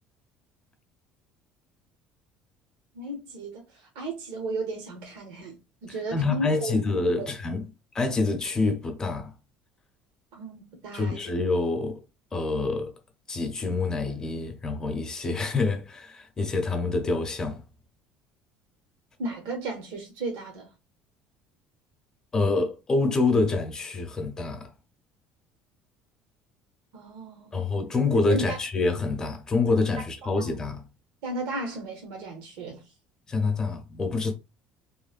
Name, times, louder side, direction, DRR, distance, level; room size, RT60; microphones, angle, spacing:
voice 1, 2.9-6.8 7.2-7.3 10.3-11.3 19.2-20.7 26.9-27.6 28.3-28.6 30.2-30.6 31.2-32.8, right 2 dB, 90° right, 0.9 m, -34 dB
voice 2, 5.9-7.7 7.9-9.3 10.9-12.0 12.3-12.9 13.3-17.6 22.3-24.7 27.5-30.8 33.3-34.3, left 3 dB, 20° left, 0.6 m, -26 dB
3.0 x 2.1 x 2.4 m
cardioid pair, 160°, 4 cm